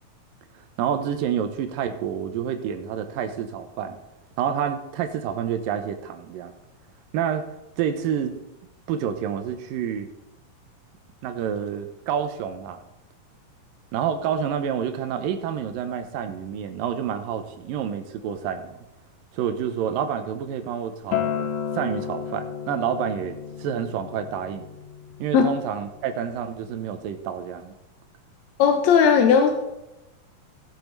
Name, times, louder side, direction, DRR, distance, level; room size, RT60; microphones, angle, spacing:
voice 1, 0.8-4.0 4.4-6.5 7.1-7.5 7.8-8.4 8.9-10.1 11.2-12.8 13.9-18.8 19.3-21.5 21.7-24.6 25.2-27.7, right 8 dB, 80° right, 8 dB, 2.6 m, -28 dB
Acoustic guitar, 21.1-26.3, left 8 dB, 85° left, 1.4 m, -33 dB
voice 2, 28.6-29.5, left 7 dB, 70° left, 4 dB, 1.9 m, -16 dB
17.0 x 7.5 x 4.0 m, 0.93 s
omnidirectional pair, 4.0 m